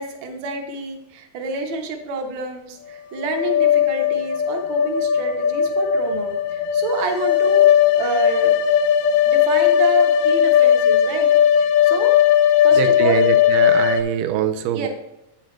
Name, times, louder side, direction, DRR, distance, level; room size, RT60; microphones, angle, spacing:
voice 1, 0.0-8.5 9.3-11.3 11.6-12.1 12.6-13.2 14.7-14.9, right 3 dB, 60° right, 2 dB, 1.3 m, -29 dB
sound 1, 3.2-14.0, left 9 dB, 85° left, 1.6 m, -17 dB
voice 2, 12.7-14.9, right 9 dB, 85° right, 9 dB, 2.2 m, -23 dB
8.9 x 7.3 x 3.2 m, 0.90 s
omnidirectional pair, 3.7 m